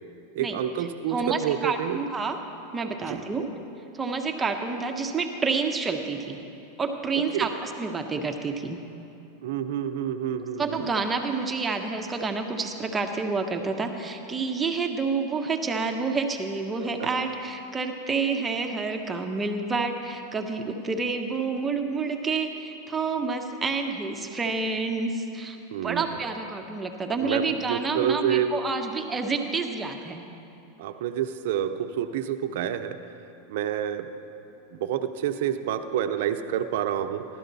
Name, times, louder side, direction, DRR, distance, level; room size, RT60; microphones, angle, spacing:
voice 1, 0.3-2.0 3.1-3.2 7.2-7.6 9.4-10.9 17.0-17.1 25.7-26.2 27.2-28.5 30.8-33.0 33.5-34.1 34.7-37.2, right 10 dB, 70° right, 9 dB, 0.6 m, -28 dB
voice 2, 1.1-2.4 2.7-3.5 3.9-6.4 6.8-8.8 10.6-25.6 25.8-30.2, right 4 dB, 20° right, 5 dB, 0.9 m, -29 dB
15.0 x 12.0 x 4.0 m, 2.9 s
hypercardioid pair, 110°, 0 cm